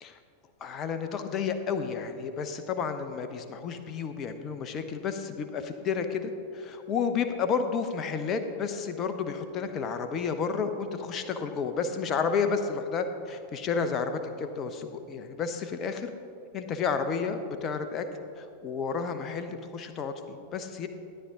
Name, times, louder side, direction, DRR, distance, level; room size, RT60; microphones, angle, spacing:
voice 1, 0.6-16.1 16.5-18.1 18.4-20.9, left 5 dB, 30° left, 8 dB, 0.8 m, -31 dB
12.5 x 9.8 x 3.8 m, 2.5 s
figure-of-eight pair, 90°, 0 cm